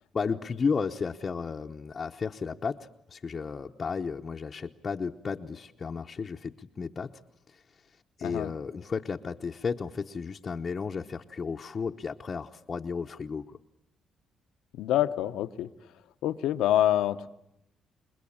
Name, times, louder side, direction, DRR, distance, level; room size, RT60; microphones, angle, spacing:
voice 1, 0.1-7.2 7.5-7.6 8.2-13.6, left 5 dB, 40° left, 1 dB, 1.0 m, -33 dB
voice 2, 8.2-8.5 14.7-15.7 16.2-17.3, left 12 dB, 85° left, 11 dB, 1.0 m, -26 dB
28.0 x 21.5 x 8.8 m, 0.81 s
cardioid pair, 90°, 0 cm